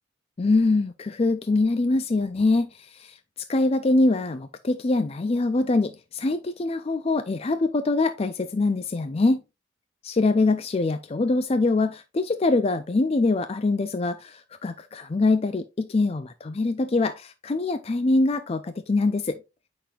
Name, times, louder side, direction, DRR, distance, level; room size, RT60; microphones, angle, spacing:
voice 1, 0.4-3.2 3.5-9.4 10.0-19.4, left 3 dB, 35° left, 0.4 m, -24 dB
8.5 x 5.9 x 2.4 m
head